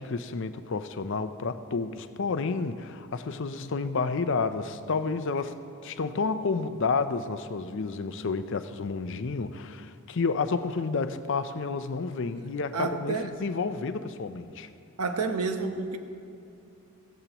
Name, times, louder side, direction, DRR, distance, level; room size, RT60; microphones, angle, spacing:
voice 1, 0.0-5.6 5.8-14.7, left 4 dB, 55° left, 10 dB, 0.5 m, -30 dB
voice 2, 12.7-13.3 15.0-16.0, right 4 dB, 90° right, 6 dB, 0.9 m, -29 dB
16.0 x 14.5 x 3.0 m, 2.6 s
head